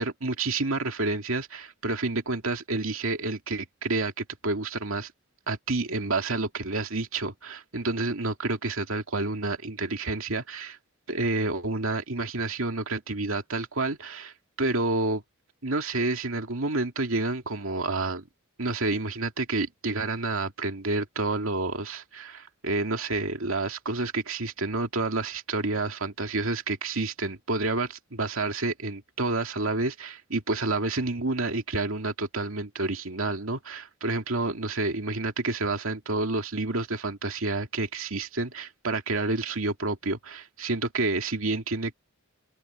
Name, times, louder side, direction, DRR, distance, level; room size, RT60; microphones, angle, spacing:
voice 1, 0.0-5.1 5.5-10.8 11.1-15.2 15.6-18.2 18.6-41.9, right 3 dB, 70° right, 2.4 m, -29 dB
head